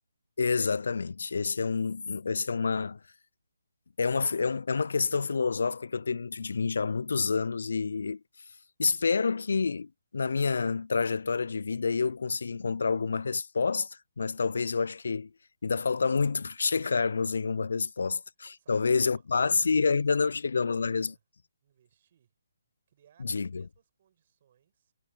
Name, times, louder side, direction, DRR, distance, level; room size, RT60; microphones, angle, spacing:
voice 1, 0.4-3.0 4.0-8.2 8.8-13.9 14.2-15.3 15.6-21.1 23.2-23.6, left 4 dB, 65° left, 0.3 m, -28 dB
voice 2, 18.6-20.0 20.4-21.2 21.6-22.3 22.9-24.9, right 10 dB, 40° right, 7.8 m, -64 dB
figure-of-eight pair, 140°, 0 cm